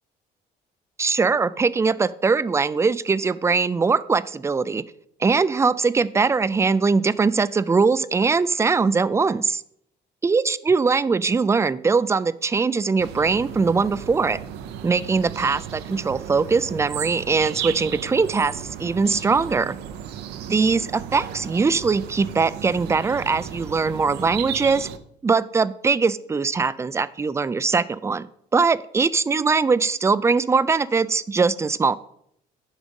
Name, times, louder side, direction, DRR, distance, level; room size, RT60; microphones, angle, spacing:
voice 1, 1.0-4.8 5.2-9.6 10.2-14.4 14.8-19.8 20.5-24.9 25.2-28.3 28.5-31.9, right 4 dB, 15° right, 17 dB, 0.4 m, -21 dB
sound 1, 13.0-25.0, right 9 dB, 90° right, 0.7 m, -35 dB
11.0 x 5.0 x 5.3 m, 0.73 s
cardioid pair, 110°, 17 cm